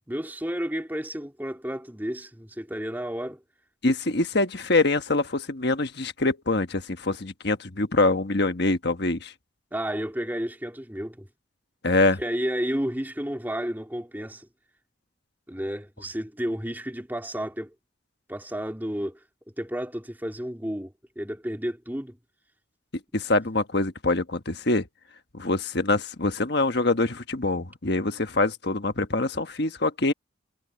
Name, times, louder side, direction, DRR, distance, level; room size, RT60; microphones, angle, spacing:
voice 1, 0.1-3.4 9.7-11.3 12.2-14.5 15.5-17.7 18.3-19.2 19.6-22.2, equal, 10° right, 2.5 m, -31 dB
voice 2, 3.8-9.3 11.8-12.2 23.1-24.9 25.3-30.1, left 2 dB, 55° left, 1.4 m, -24 dB
head